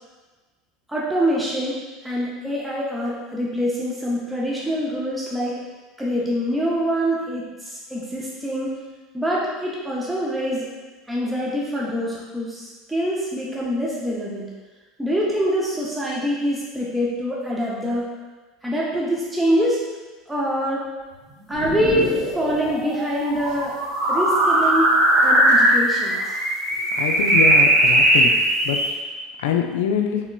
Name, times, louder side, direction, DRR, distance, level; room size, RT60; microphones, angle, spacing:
voice 1, 0.9-5.6 6.0-8.8 9.1-10.7 11.1-14.5 15.0-18.1 18.6-19.8 20.3-20.9 21.5-23.8 24.1-24.9 25.2-26.2, equal, 10° right, -5 dB, 0.5 m, -25 dB
sound 1, 21.5-28.9, right 1 dB, 60° right, 1.0 m, -19 dB
voice 2, 27.0-28.3 28.6-28.8 29.4-30.2, left 8 dB, 80° left, 4 dB, 0.3 m, -24 dB
3.2 x 2.9 x 2.2 m, 1.3 s
hypercardioid pair, 90°, 0 cm